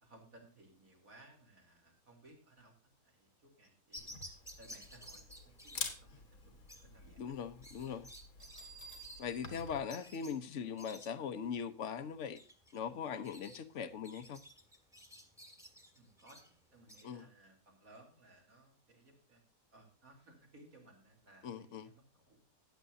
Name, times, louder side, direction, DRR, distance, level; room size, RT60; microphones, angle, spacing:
voice 1, 0.0-4.2 4.6-7.4 15.9-19.4 19.7-22.4, right 2 dB, 75° right, 3.9 m, -61 dB
sound 1, 3.9-17.0, left 1 dB, ahead, 1.5 m, -55 dB
Camera, 4.0-9.8, left 4 dB, 80° left, 2.2 m, -48 dB
voice 2, 7.2-8.1 9.2-12.4 12.7-14.4 17.0-17.2 21.4-21.8, left 7 dB, 60° left, 1.2 m, -40 dB
Bell, 8.4-11.1, right 5 dB, 55° right, 3.6 m, -56 dB
14.5 x 9.6 x 2.7 m
omnidirectional pair, 1.5 m